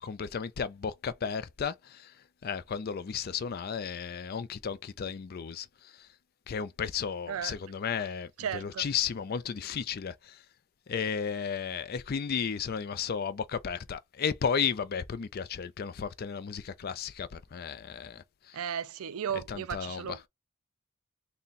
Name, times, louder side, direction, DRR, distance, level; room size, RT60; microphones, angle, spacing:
voice 1, 0.0-2.1 2.4-6.1 6.5-10.4 10.9-18.6 19.5-20.0, left 6 dB, 45° left, 0.4 m, -34 dB
voice 2, 7.3-7.6 8.4-8.9 18.5-20.3, right 8 dB, 70° right, 0.4 m, -35 dB
3.8 x 2.2 x 4.0 m
head